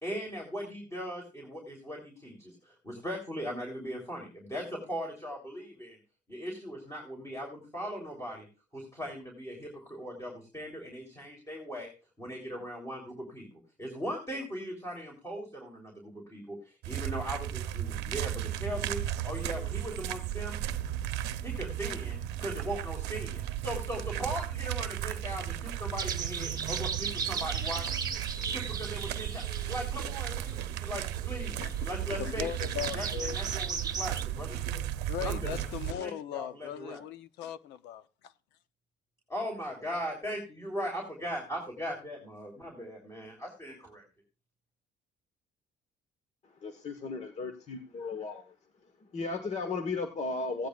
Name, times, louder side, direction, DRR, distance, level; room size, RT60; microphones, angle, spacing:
voice 1, 0.0-2.5 2.8-6.0 6.3-8.5 8.7-11.9 12.2-13.5 13.8-16.6 16.9-19.0 19.2-20.6 21.4-27.9 28.5-31.6 31.8-32.7 32.9-34.8 35.2-35.7 36.0-37.0 39.3-44.0, equal, 15° left, 3.4 m, -39 dB
sound 1, 16.8-35.9, right 12 dB, 90° right, 0.7 m, -35 dB
sound 2, 26.0-34.2, right 5 dB, 25° right, 0.8 m, -38 dB
voice 2, 32.1-33.4 35.1-38.3, left 11 dB, 90° left, 0.7 m, -38 dB
voice 3, 46.6-48.4 49.1-50.7, left 3 dB, 40° left, 1.3 m, -35 dB
16.0 x 10.0 x 2.4 m
cardioid pair, 110°, 17 cm